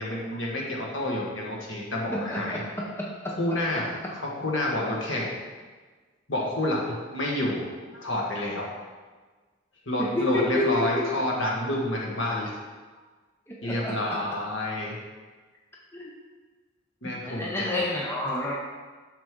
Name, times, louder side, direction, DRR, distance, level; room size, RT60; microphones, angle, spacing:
voice 1, 0.0-2.6 3.4-3.9 4.4-5.3 6.3-8.7 9.9-12.6 13.6-15.0 17.0-17.8, left 1 dB, 65° left, -2 dB, 1.5 m, -29 dB
voice 2, 2.1-3.1 10.0-11.1 13.5-14.2 15.9-16.1 17.3-18.5, left 1 dB, 10° left, -3 dB, 0.6 m, -29 dB
6.5 x 6.1 x 3.7 m, 1.4 s
head